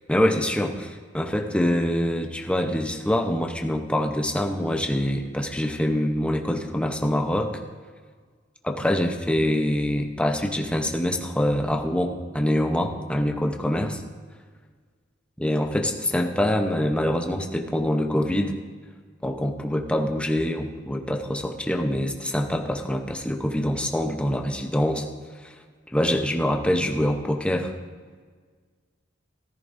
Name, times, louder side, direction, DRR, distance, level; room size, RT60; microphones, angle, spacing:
voice 1, 0.1-7.6 8.6-14.0 15.4-18.5 19.2-25.1 25.4-25.5 25.9-27.7, left 1 dB, 5° left, 3 dB, 0.8 m, -25 dB
14.5 x 14.0 x 2.7 m, 1.5 s
head